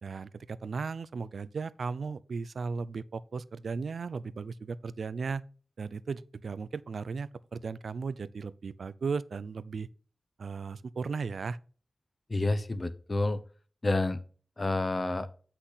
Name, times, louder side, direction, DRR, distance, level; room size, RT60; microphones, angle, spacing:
voice 1, 0.0-5.4 5.8-9.9 10.4-11.6, right 5 dB, 70° right, 0.5 m, -36 dB
voice 2, 12.3-13.4 13.8-14.2 14.6-15.3, left 2 dB, 30° left, 0.9 m, -29 dB
8.2 x 5.9 x 4.0 m
wide cardioid pair, 120°, 0 cm